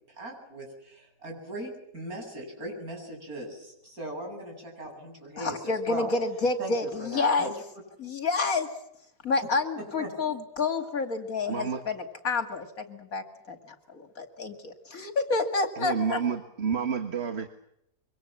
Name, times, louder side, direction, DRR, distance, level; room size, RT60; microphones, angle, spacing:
voice 1, 0.2-6.1 6.6-7.6 9.8-10.1, right 1 dB, 75° right, 1 dB, 8.6 m, -39 dB
voice 2, 5.4-7.5 8.0-8.7 9.2-16.2, left 3 dB, 70° left, 6 dB, 2.8 m, -29 dB
voice 3, 11.5-11.8 15.8-17.5, right 6 dB, 45° right, 6 dB, 1.7 m, -29 dB
26.0 x 24.0 x 7.5 m, 0.79 s
omnidirectional pair, 1.5 m